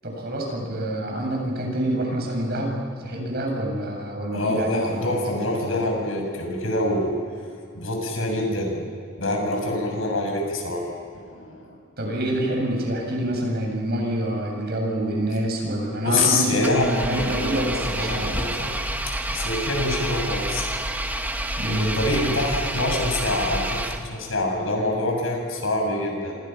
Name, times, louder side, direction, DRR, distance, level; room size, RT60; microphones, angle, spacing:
voice 1, 0.0-5.1 5.6-5.7 12.0-18.4 21.6-22.0, right 1 dB, 50° right, 0 dB, 7.3 m, -27 dB
voice 2, 4.3-7.1 7.7-8.8 9.2-10.9 11.1-11.8 16.0-18.7 19.0-20.7 21.7-26.4, left 2 dB, 80° left, 1 dB, 7.1 m, -26 dB
Engine, 16.6-24.4, right 1 dB, 10° right, 1.4 m, -29 dB
28.0 x 27.5 x 5.9 m, 2.4 s
head